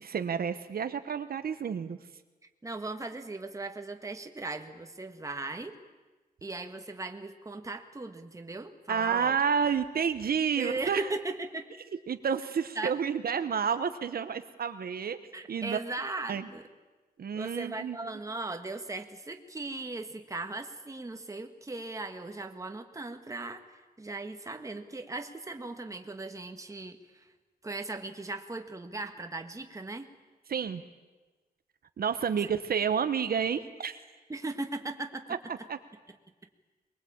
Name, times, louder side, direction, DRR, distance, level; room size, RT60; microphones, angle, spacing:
voice 1, 0.0-2.0 8.9-11.1 12.1-15.2 15.5-15.8 16.3-16.5 17.2-18.0 30.5-30.8 32.0-34.0 35.7-35.8, right 7 dB, 70° right, 9 dB, 1.1 m, -30 dB
voice 2, 2.6-5.8 6.4-9.4 10.6-11.7 12.8-13.0 15.3-16.6 17.3-27.3 27.6-30.1 34.3-35.3, right 2 dB, 20° right, 6 dB, 1.6 m, -38 dB
23.0 x 22.0 x 8.7 m, 1.2 s
wide cardioid pair, 150°, 16 cm